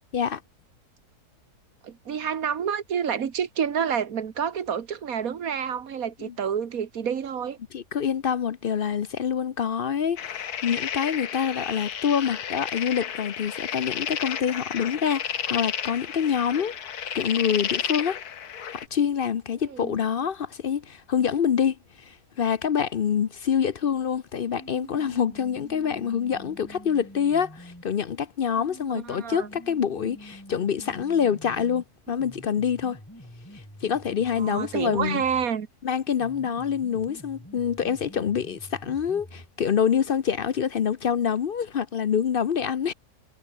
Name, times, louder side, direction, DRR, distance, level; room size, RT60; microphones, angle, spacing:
voice 1, 1.8-7.6 19.7-20.0 28.9-29.5 34.3-35.7, right 7 dB, 65° right, 1.8 m, -28 dB
voice 2, 7.7-16.8 17.1-18.2 18.7-33.0 33.5-35.2 35.8-42.9, left 7 dB, 50° left, 0.7 m, -26 dB
sound 1, 10.2-18.9, left 8 dB, 85° left, 1.7 m, -32 dB
sound 2, 24.6-27.9 28.6-35.5 36.1-39.5, equal, 10° left, 7.5 m, -46 dB
omnidirectional pair, 1.6 m